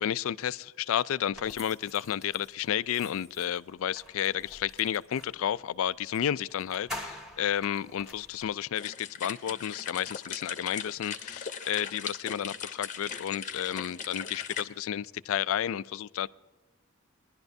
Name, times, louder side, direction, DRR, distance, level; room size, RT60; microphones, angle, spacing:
voice 1, 0.0-16.3, left 10 dB, 70° left, 18 dB, 0.3 m, -31 dB
sound 1, 1.3-5.4 6.1-6.2 6.5-8.5, left 1 dB, ahead, 1.7 m, -46 dB
sound 2, 8.7-14.6, left 7 dB, 35° left, 0.8 m, -39 dB
21.0 x 11.5 x 2.6 m, 1.1 s
head